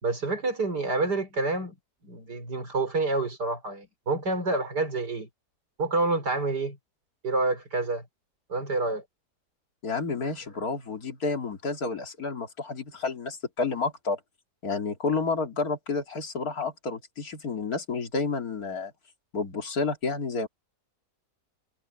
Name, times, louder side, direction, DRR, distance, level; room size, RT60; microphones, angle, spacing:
voice 1, 0.0-1.7 2.0-5.3 5.8-6.8 7.2-8.0 8.5-9.0, right 3 dB, 85° right, 5.3 m, -28 dB
voice 2, 9.8-14.2 14.6-18.9 19.3-20.5, left 4 dB, 65° left, 2.9 m, -30 dB
omnidirectional pair, 1.7 m